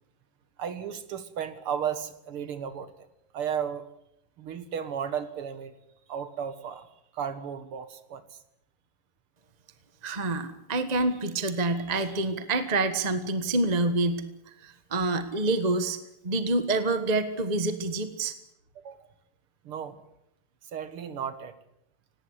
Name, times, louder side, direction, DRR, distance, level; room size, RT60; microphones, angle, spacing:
voice 1, 0.6-3.1 3.3-3.8 4.4-5.7 6.1-6.9 7.1-8.4 18.8-19.0 19.6-20.0 20.7-21.5, right 8 dB, 80° right, 12 dB, 2.5 m, -34 dB
voice 2, 10.0-14.2 14.6-16.0 16.2-18.3, right 2 dB, 20° right, 10 dB, 1.4 m, -27 dB
18.5 x 17.5 x 9.7 m, 0.79 s
omnidirectional pair, 2.4 m